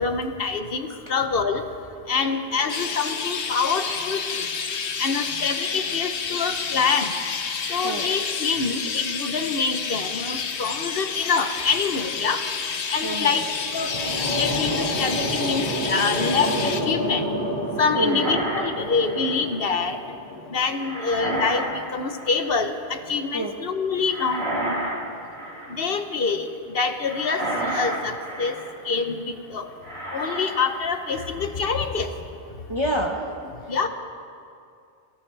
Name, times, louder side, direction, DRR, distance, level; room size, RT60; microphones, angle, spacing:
voice 1, 0.0-1.6 2.1-4.4 5.0-7.1 7.7-12.4 12.9-13.5 13.7-17.2 17.8-20.0 20.5-24.4 25.7-26.5 26.7-28.5 28.8-29.2 29.5-29.7 30.1-32.1 33.7-33.9, left 5 dB, 60° left, 7 dB, 1.1 m, -25 dB
Chirp tweet, 2.7-16.8, left 6 dB, 80° left, 1.2 m, -29 dB
voice 2, 13.0-13.3 17.9-18.3 23.3-23.5 32.7-33.2, right 1 dB, 25° right, -1 dB, 1.2 m, -27 dB
sound 1, 13.5-20.6, equal, 35° left, 2.2 m, -29 dB
sound 2, 17.8-19.5 20.8-21.8 22.0-22.6 24.0-25.0 25.3-25.8 27.0-28.7 29.8-30.7 31.0-31.4, right 1 dB, 65° right, 3.0 m, -31 dB
24.0 x 17.0 x 3.4 m, 2.4 s
omnidirectional pair, 1.1 m